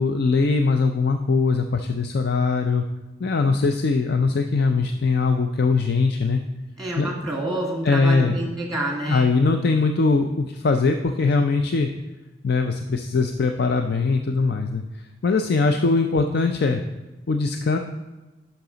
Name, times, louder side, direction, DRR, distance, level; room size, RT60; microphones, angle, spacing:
voice 1, 0.0-2.9 3.2-6.4 7.0-7.1 7.8-8.4 9.1-11.9 12.4-14.8 15.2-16.8 17.3-17.8, left 4 dB, 55° left, 6 dB, 0.4 m, -21 dB
voice 2, 6.8-9.3, right 1 dB, ahead, -1 dB, 1.6 m, -28 dB
10.5 x 5.8 x 3.9 m, 1.1 s
head